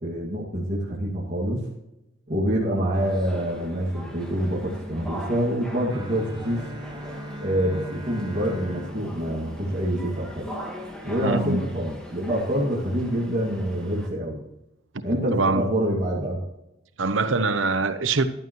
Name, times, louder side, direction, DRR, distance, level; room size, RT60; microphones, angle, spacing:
voice 1, 0.0-1.6 2.3-6.6 7.4-10.5 11.0-14.4 15.0-16.4, equal, 40° right, 2.2 m, -26 dB
sound 1, 2.9-14.1, equal, 5° left, 2.0 m, -40 dB
Bowed string instrument, 5.9-10.7, equal, 20° right, 1.3 m, -40 dB
voice 2, 11.2-11.6 14.9-15.7 17.0-18.3, right 3 dB, 90° right, 0.9 m, -24 dB
14.5 x 11.5 x 3.1 m
head